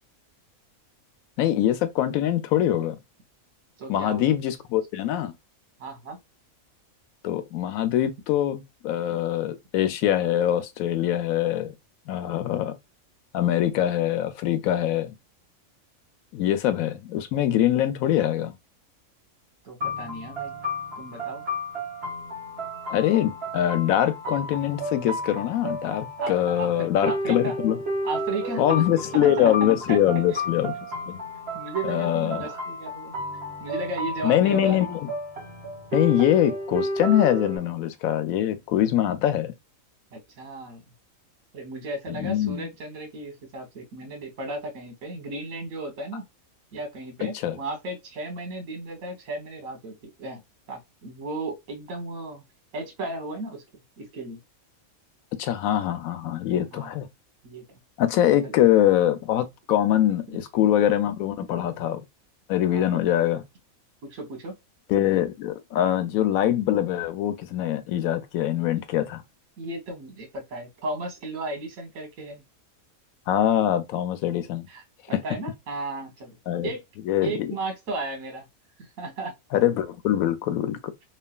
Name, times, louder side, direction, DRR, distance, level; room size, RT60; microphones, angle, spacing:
voice 1, 1.4-3.0 3.9-5.3 7.2-11.7 12.1-12.7 13.3-15.1 16.3-18.6 22.9-27.8 28.6-30.8 31.1-31.2 31.8-32.6 34.2-35.0 35.9-39.5 42.1-42.7 47.4-47.6 55.4-57.1 58.0-62.0 62.5-63.4 64.9-69.2 73.3-74.7 76.5-76.7 77.1-77.3 79.5-80.8, left 11 dB, 80° left, 1.0 m, -23 dB
voice 2, 3.8-4.3 5.8-6.2 16.4-16.5 19.6-20.5 21.0-21.4 26.2-27.6 28.0-28.8 29.1-30.0 31.5-33.2 33.6-34.8 40.1-40.8 41.5-46.3 46.7-50.4 50.7-52.4 52.7-54.4 56.7-56.9 57.4-57.8 58.4-58.5 60.3-60.4 62.7-62.8 64.0-64.5 69.6-72.4 74.7-76.4 76.6-76.8 77.2-78.5 78.8-79.3, right 2 dB, 75° right, 1.4 m, -35 dB
sound 1, 19.8-37.6, equal, 50° right, 1.2 m, -32 dB
3.2 x 2.4 x 2.2 m
omnidirectional pair, 1.5 m